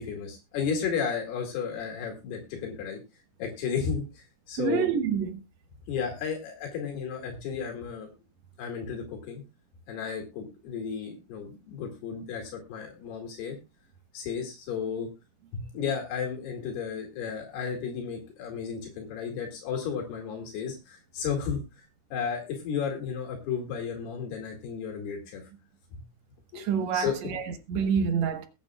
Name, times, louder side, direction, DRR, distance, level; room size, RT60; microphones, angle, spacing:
voice 1, 0.0-3.0 3.4-4.9 5.9-8.1 8.6-9.4 9.9-13.6 14.1-15.1 15.5-21.9 22.1-25.5 25.9-26.0 26.5-27.1, left 6 dB, 80° left, 4.2 m, -33 dB
voice 2, 4.6-5.4 26.5-28.5, right 7 dB, 65° right, 1.7 m, -27 dB
22.5 x 8.9 x 2.3 m
omnidirectional pair, 4.5 m